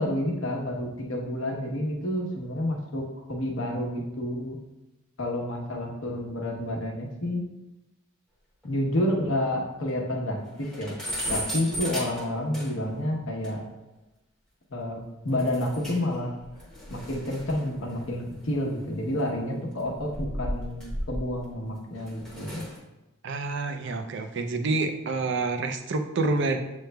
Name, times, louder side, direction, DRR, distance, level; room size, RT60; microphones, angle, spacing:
voice 1, 0.0-3.0 3.3-4.6 5.2-7.4 8.6-10.9 11.3-13.6 14.7-16.3 16.9-22.7, left 1 dB, 65° left, 0 dB, 0.9 m, -29 dB
sound 1, 8.6-8.7 9.1-9.2 9.5-9.6 9.9-10.0 10.4-13.0 13.4-13.5 15.4-16.1 16.4-19.1 19.9-21.5 22.0-22.8, equal, 5° left, 0.8 m, -36 dB
voice 2, 23.2-26.6, right 3 dB, 55° right, 6 dB, 0.4 m, -28 dB
7.5 x 3.1 x 2.2 m, 0.99 s
head